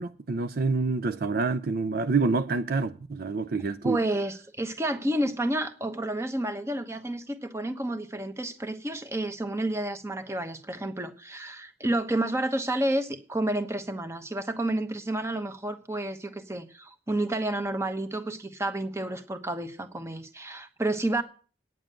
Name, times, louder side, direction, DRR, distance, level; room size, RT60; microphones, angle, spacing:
voice 1, 0.0-4.0, right 3 dB, 55° right, 0.5 m, -27 dB
voice 2, 3.8-21.2, right 1 dB, 15° right, 1.0 m, -30 dB
9.3 x 7.3 x 8.9 m
head